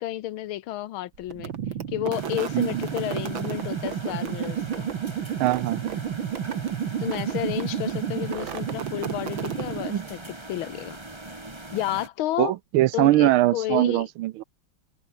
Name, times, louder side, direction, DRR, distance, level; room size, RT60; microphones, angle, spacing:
voice 1, 0.0-1.5 1.9-4.9 7.0-11.0 11.7-12.5 12.9-14.1, left 14 dB, 75° left, 1.6 m, -31 dB
sound 1, 1.3-10.3, right 8 dB, 65° right, 2.2 m, -31 dB
sound 2, 2.1-12.1, right 2 dB, 10° right, 2.4 m, -41 dB
voice 2, 5.4-6.0 12.4-14.4, right 16 dB, 80° right, 1.4 m, -22 dB
omnidirectional pair, 2.4 m